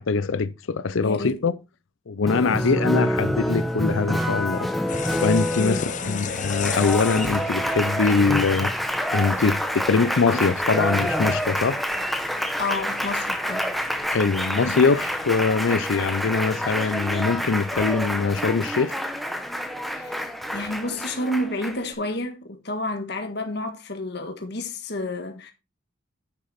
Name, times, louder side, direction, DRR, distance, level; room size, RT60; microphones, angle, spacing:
voice 1, 0.0-1.5 2.1-4.7 5.2-8.7 9.1-11.8 14.1-19.0, left 4 dB, 70° left, 0.5 m, -23 dB
voice 2, 1.0-1.6 2.2-2.7 5.6-6.4 12.6-13.7 19.9-25.5, left 2 dB, 50° left, 1.5 m, -30 dB
Applause, 2.3-21.9, equal, ahead, 0.8 m, -27 dB
sound 1, 4.9-18.2, left 6 dB, 35° left, 0.7 m, -38 dB
9.7 x 6.4 x 4.1 m
head